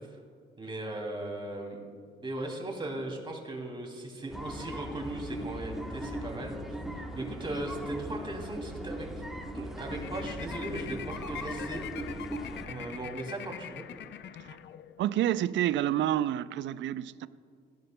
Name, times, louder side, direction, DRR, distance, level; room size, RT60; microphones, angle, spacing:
voice 1, 0.6-1.8 2.2-6.8 7.1-9.1 9.5-11.8 12.2-12.3 12.6-13.8, right 1 dB, 25° right, 2.6 m, -38 dB
sound 1, 4.3-12.6, right 1 dB, ahead, 1.1 m, -39 dB
sound 2, 9.9-15.1, left 10 dB, 65° left, 0.5 m, -43 dB
voice 2, 15.0-17.3, right 12 dB, 70° right, 0.4 m, -29 dB
17.0 x 11.0 x 2.2 m
cardioid pair, 90°, 20 cm